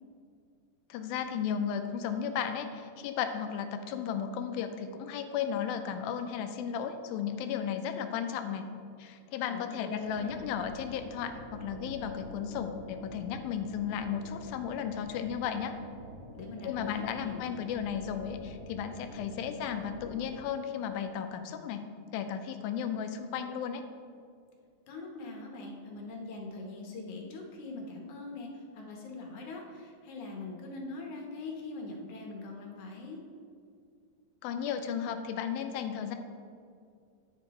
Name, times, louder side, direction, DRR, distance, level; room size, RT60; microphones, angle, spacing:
voice 1, 0.9-8.7 9.0-15.7 16.6-21.9 22.1-23.8 34.4-36.2, left 8 dB, 85° left, 8 dB, 2.4 m, -34 dB
voice 2, 9.5-10.5 16.3-17.4 24.9-33.2, left 3 dB, 65° left, 1 dB, 2.1 m, -42 dB
sound 1, 10.0-20.3, equal, 75° right, 0.7 m, -47 dB
9.8 x 9.4 x 3.0 m, 2.2 s
omnidirectional pair, 4.2 m